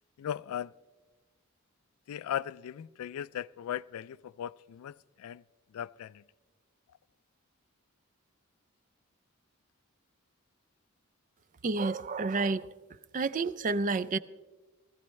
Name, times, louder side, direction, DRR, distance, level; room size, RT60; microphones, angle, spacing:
voice 1, 0.2-0.7 2.1-5.4 5.7-6.2, left 10 dB, 85° left, 0.3 m, -38 dB
voice 2, 11.6-12.7 13.1-14.2, right 3 dB, 35° right, 0.4 m, -29 dB
19.0 x 14.5 x 3.2 m
head